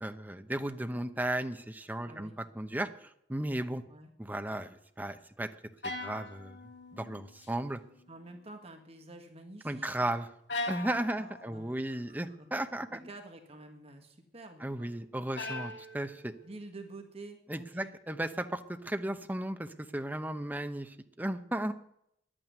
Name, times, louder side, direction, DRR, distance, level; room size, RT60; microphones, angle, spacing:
voice 1, 0.0-3.8 4.2-5.5 5.8-6.6 6.9-7.8 9.6-10.3 10.7-13.1 14.6-16.3 17.5-21.7, right 1 dB, 10° right, 9 dB, 0.8 m, -35 dB
voice 2, 2.0-2.4 3.9-4.1 8.1-10.1 10.9-12.5 12.9-14.9 16.4-17.9, right 2 dB, 35° right, 4 dB, 1.7 m, -49 dB
sound 1, 5.8-7.5 7.8-8.4 10.5-11.7 15.4-16.5, left 2 dB, 80° left, 2.3 m, -41 dB
11.0 x 8.9 x 9.3 m, 0.74 s
head